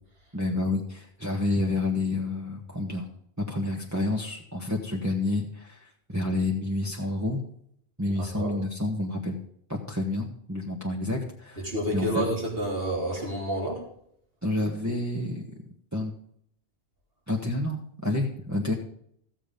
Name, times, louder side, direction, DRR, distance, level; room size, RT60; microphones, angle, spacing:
voice 1, 0.3-3.1 3.4-7.4 8.0-9.4 9.7-12.2 14.4-15.4 15.9-16.1 17.3-18.7, left 2 dB, 15° right, -3 dB, 1.4 m, -29 dB
voice 2, 11.6-13.8, right 1 dB, 60° right, -1 dB, 3.9 m, -29 dB
14.5 x 7.6 x 5.2 m, 0.69 s
omnidirectional pair, 1.1 m